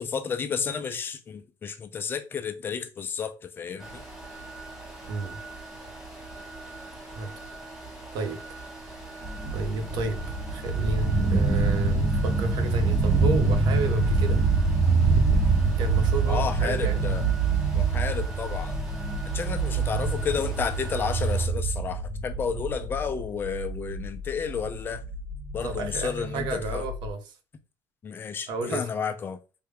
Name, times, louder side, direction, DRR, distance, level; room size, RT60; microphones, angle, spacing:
voice 1, 0.0-4.0 16.3-17.2 17.7-18.8 19.3-25.0 25.5-26.8 28.0-29.4, left 6 dB, 30° left, 0.4 m, -31 dB
sound 1, 3.8-21.5, right 2 dB, 5° right, 0.9 m, -42 dB
voice 2, 5.1-5.4 7.1-7.3 8.1-8.4 9.5-14.4 15.8-17.0 25.6-27.3 28.5-28.9, right 3 dB, 80° right, 0.7 m, -31 dB
sound 2, 9.2-27.1, right 3 dB, 30° right, 0.5 m, -26 dB
3.4 x 2.2 x 3.3 m
cardioid pair, 150°, 8 cm